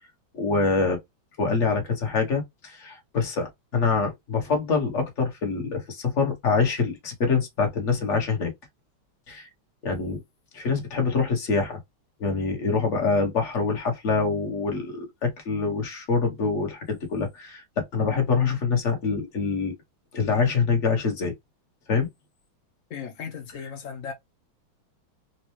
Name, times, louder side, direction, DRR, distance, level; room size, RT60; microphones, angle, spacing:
voice 1, 0.3-1.0 1.4-8.5 9.3-9.5 9.8-10.2 10.5-11.8 12.2-19.7 20.1-21.3 21.9-22.1, left 4 dB, 40° left, 1.3 m, -25 dB
voice 2, 22.9-24.1, left 6 dB, 70° left, 0.7 m, -36 dB
4.3 x 2.2 x 3.1 m
omnidirectional pair, 2.3 m